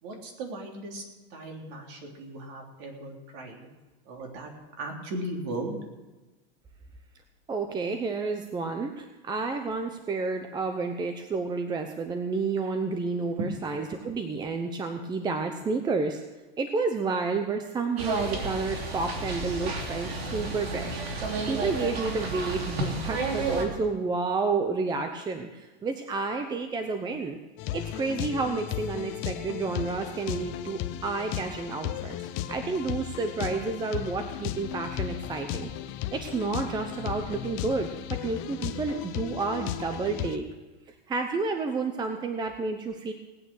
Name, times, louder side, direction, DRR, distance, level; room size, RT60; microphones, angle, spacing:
voice 1, 0.0-1.0 1.3-3.7 4.1-4.5 4.8-5.8 13.4-13.5, right 1 dB, 50° right, 1 dB, 3.6 m, -37 dB
voice 2, 7.5-16.2 16.6-21.0 21.5-27.4 27.7-35.7 36.1-40.5 41.1-43.1, right 4 dB, 15° right, 6 dB, 0.8 m, -30 dB
sound 1, 18.0-23.6, right 3 dB, 90° right, 3.2 m, -31 dB
sound 2, 27.6-40.4, left 12 dB, 40° left, 0.9 m, -35 dB
18.5 x 9.1 x 6.4 m, 1.2 s
supercardioid pair, 140°, 30 cm